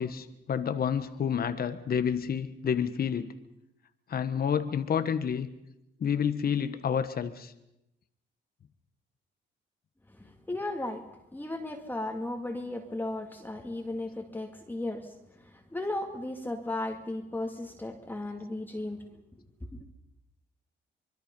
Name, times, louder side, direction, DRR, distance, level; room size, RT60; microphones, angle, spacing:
voice 1, 0.0-3.3 4.1-5.5 6.0-7.5, left 7 dB, 50° left, 10 dB, 1.3 m, -29 dB
voice 2, 10.1-11.1 11.3-19.1 19.7-19.8, left 2 dB, 10° left, 2 dB, 2.2 m, -35 dB
25.0 x 22.0 x 5.4 m, 0.87 s
cardioid pair, 90°, 20 cm